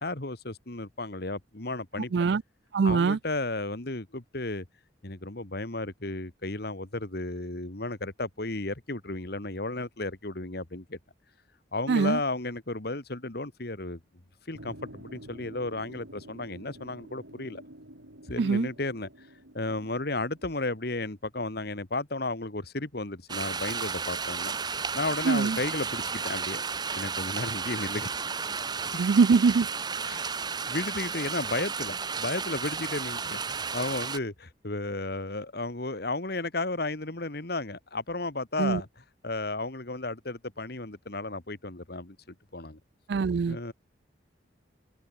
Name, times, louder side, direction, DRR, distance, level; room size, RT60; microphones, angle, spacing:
voice 1, 0.0-2.3 2.8-4.7 5.0-11.0 11.7-14.0 14.5-17.6 18.3-19.3 19.5-24.5 24.9-26.6 27.0-28.1 28.8-29.0 30.0-30.3 30.7-38.9 39.2-42.8 43.5-43.7, left 2 dB, 55° left, 1.9 m, -33 dB
voice 2, 2.1-2.4 2.7-3.2 11.9-12.2 18.4-18.7 25.2-25.6 29.0-29.7 38.6-38.8 43.1-43.6, right 5 dB, 60° right, 0.4 m, -23 dB
sound 1, 14.5-20.8, right 1 dB, 85° right, 7.3 m, -49 dB
sound 2, 23.3-34.2, right 5 dB, 20° right, 0.8 m, -33 dB
head